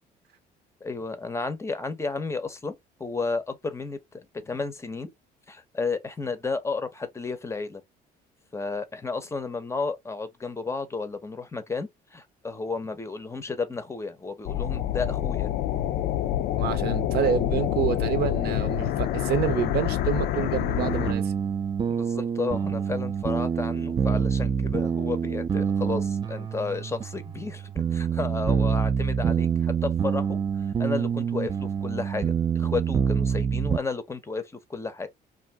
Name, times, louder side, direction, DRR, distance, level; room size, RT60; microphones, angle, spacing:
voice 1, 0.8-5.1 5.5-7.8 8.5-15.5 21.9-30.4 30.8-34.4 34.7-35.1, left 4 dB, 15° left, 0.6 m, -32 dB
sound 1, 14.5-21.1, left 12 dB, 70° left, 0.4 m, -27 dB
voice 2, 16.6-21.3, right 8 dB, 70° right, 0.7 m, -28 dB
sound 2, 20.8-33.8, right 7 dB, 25° right, 0.3 m, -26 dB
2.6 x 2.5 x 3.3 m
cardioid pair, 110°, 17 cm